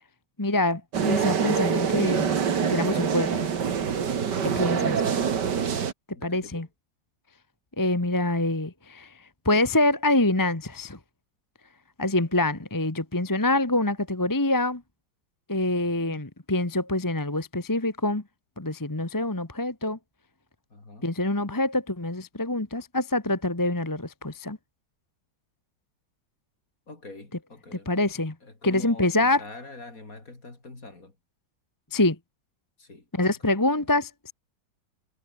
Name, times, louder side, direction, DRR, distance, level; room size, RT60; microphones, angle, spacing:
voice 1, 0.4-3.5 4.4-5.0 6.2-6.7 7.8-11.0 12.0-14.8 15.5-18.2 18.6-20.0 21.0-24.6 27.7-28.3 28.6-29.4 31.9-32.2 33.1-34.3, left 2 dB, 10° left, 1.2 m, -25 dB
sound 1, 0.9-5.9, right 7 dB, 60° right, 2.3 m, -25 dB
voice 2, 4.7-5.1 6.1-6.7 15.8-16.2 20.7-21.1 26.9-28.1 28.4-31.1 32.8-33.9, left 2 dB, 40° left, 4.8 m, -45 dB
omnidirectional pair, 2.2 m